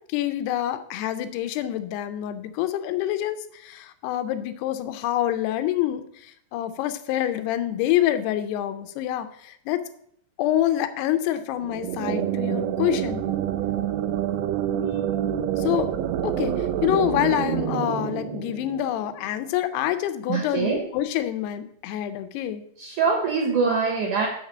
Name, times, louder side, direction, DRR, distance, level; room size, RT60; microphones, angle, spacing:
voice 1, 0.1-9.8 10.4-13.3 15.6-15.9 16.2-22.6, left 12 dB, 80° left, 10 dB, 2.6 m, -26 dB
sound 1, 11.6-19.2, right 10 dB, 90° right, 2.8 m, -27 dB
voice 2, 20.3-20.8 22.8-24.3, right 5 dB, 70° right, 0 dB, 2.0 m, -23 dB
6.6 x 6.2 x 7.3 m, 0.70 s
omnidirectional pair, 5.0 m